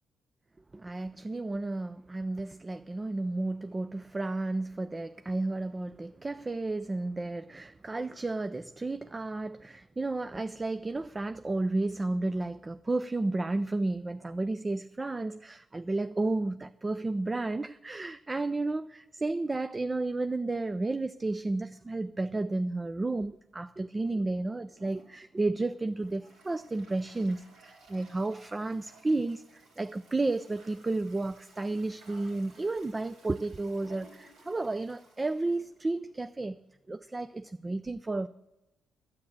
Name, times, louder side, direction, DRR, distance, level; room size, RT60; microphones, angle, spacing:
voice 1, 0.7-36.6 36.9-38.3, right 2 dB, 20° right, 0.3 m, -32 dB
Toilet flush, 24.7-36.5, right 2 dB, 75° right, 3.4 m, -58 dB
10.5 x 8.5 x 7.7 m
cardioid pair, 90°, 0 cm